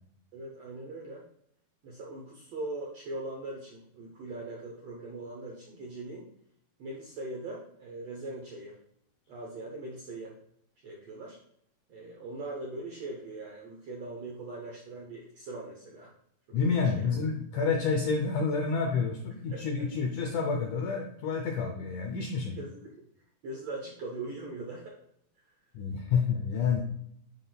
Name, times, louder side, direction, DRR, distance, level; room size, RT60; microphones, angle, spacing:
voice 1, 0.3-1.2 1.8-6.3 6.8-8.8 9.3-10.4 10.8-11.4 11.9-16.1 16.5-17.1 19.5-19.6 22.5-23.0 23.4-25.0, right 2 dB, 75° right, -2 dB, 1.5 m, -41 dB
voice 2, 16.5-22.6 25.7-26.8, left 5 dB, 90° left, 2 dB, 1.7 m, -29 dB
11.0 x 4.0 x 2.3 m, 0.71 s
omnidirectional pair, 4.3 m